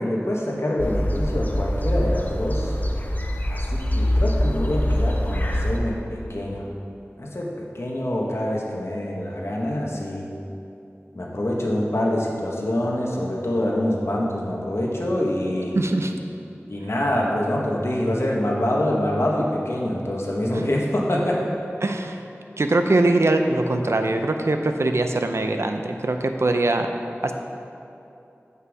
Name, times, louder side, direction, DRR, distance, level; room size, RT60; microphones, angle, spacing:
voice 1, 0.0-2.8 3.5-6.6 7.2-10.3 11.1-15.8 16.7-21.4, left 1 dB, 65° left, -2 dB, 1.3 m, -25 dB
sound 1, 0.8-5.8, equal, 35° left, 0.7 m, -24 dB
voice 2, 15.7-16.1 20.5-20.7 21.8-22.2 22.6-26.9 27.2-27.3, right 2 dB, 65° right, 5 dB, 0.5 m, -22 dB
8.2 x 5.5 x 4.9 m, 2.8 s
wide cardioid pair, 45°, 5 cm